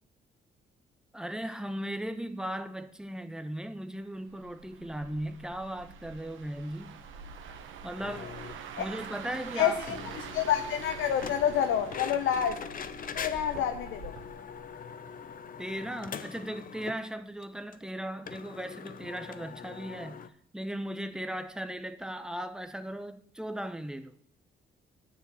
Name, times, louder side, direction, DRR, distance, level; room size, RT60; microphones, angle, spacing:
voice 1, 1.1-7.0 7.8-8.3 8.8-10.1 15.6-20.2 20.5-24.2, right 1 dB, 5° right, 0.8 m, -37 dB
sound 1, 4.3-15.4 15.7-16.0, right 6 dB, 75° right, 1.0 m, -46 dB
sound 2, 8.0-8.6 9.0-9.1 9.3-9.4 9.9-17.0 17.4-17.5 17.7-17.8 18.3-20.3, left 7 dB, 45° left, 0.7 m, -42 dB
voice 2, 9.6-12.6 13.1-14.1, left 9 dB, 80° left, 0.7 m, -28 dB
9.9 x 4.8 x 8.0 m
cardioid pair, 90°, 20 cm